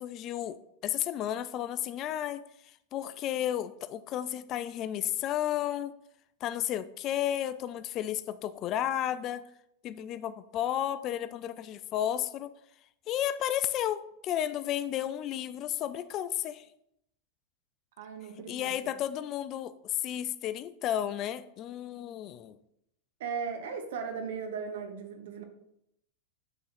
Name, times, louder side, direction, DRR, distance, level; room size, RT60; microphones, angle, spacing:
voice 1, 0.0-2.4 2.9-5.9 6.4-9.4 9.8-12.5 13.1-16.7 18.5-22.6, left 11 dB, 40° left, 0.4 m, -32 dB
voice 2, 18.0-18.9 23.2-25.4, right 6 dB, 75° right, 1.2 m, -37 dB
8.4 x 3.8 x 4.3 m
supercardioid pair, 125°, 0 cm